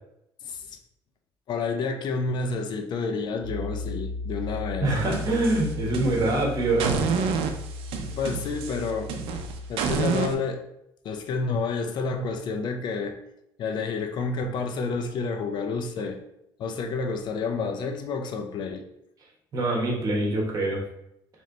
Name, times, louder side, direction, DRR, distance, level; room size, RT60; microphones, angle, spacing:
voice 1, 0.4-0.8 1.5-5.0 8.2-9.2 9.7-10.6 11.0-13.2 13.6-16.2 16.6-18.9, left 4 dB, 55° left, 5 dB, 0.5 m, -29 dB
Piano, 3.4-9.7, left 3 dB, 80° left, 1.1 m, -35 dB
voice 2, 4.8-7.0 19.5-20.8, right 2 dB, 40° right, -1 dB, 1.3 m, -24 dB
sound 1, 5.0-6.4 6.8-10.3, right 6 dB, 80° right, 0.5 m, -29 dB
3.1 x 3.0 x 3.8 m, 0.79 s
cardioid pair, 120°, 9 cm